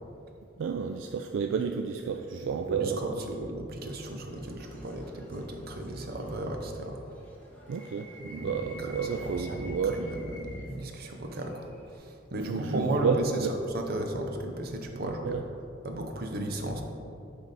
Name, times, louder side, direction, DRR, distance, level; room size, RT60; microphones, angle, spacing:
voice 1, 0.6-3.0 7.7-10.0 12.5-13.5 14.9-15.4, right 6 dB, 75° right, 5 dB, 0.3 m, -31 dB
voice 2, 2.7-7.0 8.3-15.4 15.8-16.8, right 1 dB, 55° right, 4 dB, 0.7 m, -35 dB
sound 1, 3.8-12.0, left 1 dB, 10° left, 1.1 m, -52 dB
10.0 x 3.4 x 4.1 m, 2.7 s
head